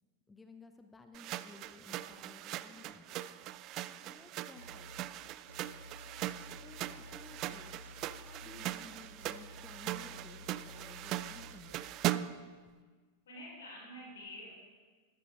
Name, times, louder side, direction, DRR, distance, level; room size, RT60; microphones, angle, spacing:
voice 1, 0.3-3.4 4.1-5.1 6.6-7.8 8.1-11.8, left 3 dB, 10° left, 6 dB, 0.6 m, -56 dB
sound 1, 1.1-12.5, right 14 dB, 40° right, 0.3 m, -40 dB
sound 2, 4.6-5.1 5.5-8.8 9.0-11.9, left 1 dB, 85° right, 0.6 m, -53 dB
voice 2, 8.4-8.9 13.2-14.5, left 1 dB, 65° left, -3 dB, 4.1 m, -50 dB
13.5 x 12.0 x 3.6 m, 1.5 s
figure-of-eight pair, 90°, 0 cm